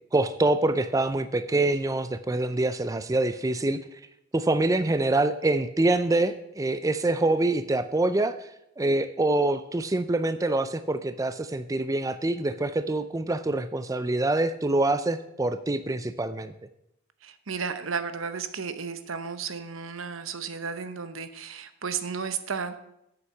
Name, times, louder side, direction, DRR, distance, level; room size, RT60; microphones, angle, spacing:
voice 1, 0.1-3.8 4.3-8.4 8.8-16.5, right 2 dB, 15° right, 12 dB, 0.4 m, -25 dB
voice 2, 17.2-22.8, right 6 dB, 65° right, 11 dB, 0.9 m, -33 dB
8.3 x 8.1 x 7.1 m, 0.81 s
head